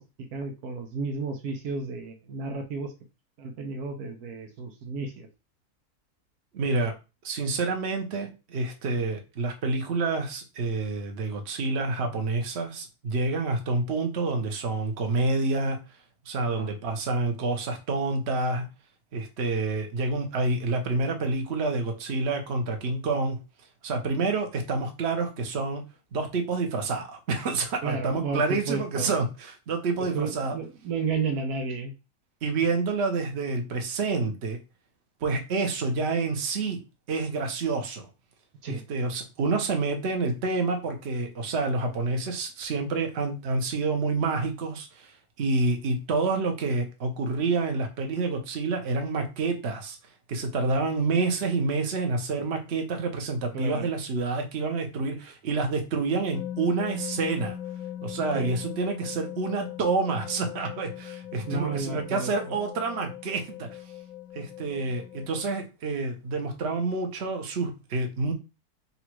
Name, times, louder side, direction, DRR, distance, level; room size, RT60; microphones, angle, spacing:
voice 1, 0.0-2.9 3.4-5.3 16.5-16.7 27.8-29.2 30.1-31.9 38.6-38.8 53.5-53.9 58.3-58.5 61.5-62.3, right 4 dB, 80° right, 5 dB, 1.3 m, -32 dB
voice 2, 6.5-6.9 7.2-15.8 16.2-18.7 19.1-23.4 23.8-25.8 26.1-30.5 32.4-34.6 35.2-36.8 37.1-38.1 38.7-50.0 50.3-57.6 58.0-63.8 64.3-68.3, right 3 dB, 50° right, 4 dB, 1.1 m, -28 dB
sound 1, 56.3-65.5, left 11 dB, 70° left, 0.9 m, -39 dB
4.0 x 2.3 x 4.5 m, 0.28 s
omnidirectional pair, 1.6 m